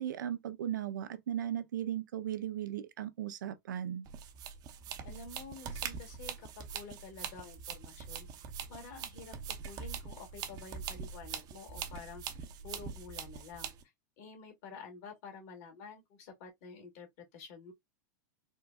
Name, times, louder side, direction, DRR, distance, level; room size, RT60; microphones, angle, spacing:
voice 1, 0.0-4.1, right 10 dB, 80° right, 0.6 m, -37 dB
sound 1, 4.1-13.8, right 7 dB, 40° right, 0.8 m, -43 dB
voice 2, 5.0-8.3 8.7-12.2 12.6-13.7 14.2-17.1 17.3-17.7, left 4 dB, 60° left, 1.9 m, -49 dB
4.3 x 2.2 x 2.2 m
hypercardioid pair, 105°, 10 cm